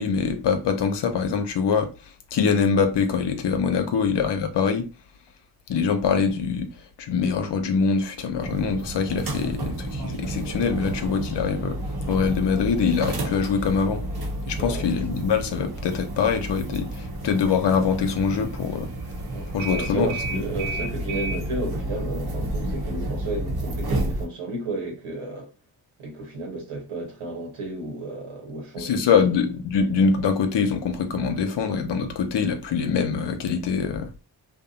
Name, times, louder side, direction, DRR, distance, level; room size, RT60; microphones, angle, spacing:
voice 1, 0.0-1.9 2.3-4.9 5.7-6.7 7.0-11.8 12.1-14.0 14.5-18.9 19.5-20.4 28.8-34.1, left 5 dB, 55° left, 0.7 m, -24 dB
voice 2, 3.7-4.0 14.6-14.9 19.3-25.5 26.0-29.3, right 2 dB, 80° right, 1.1 m, -33 dB
sound 1, 8.4-24.3, right 1 dB, 50° right, 0.8 m, -31 dB
2.6 x 2.1 x 2.7 m
supercardioid pair, 45°, 49 cm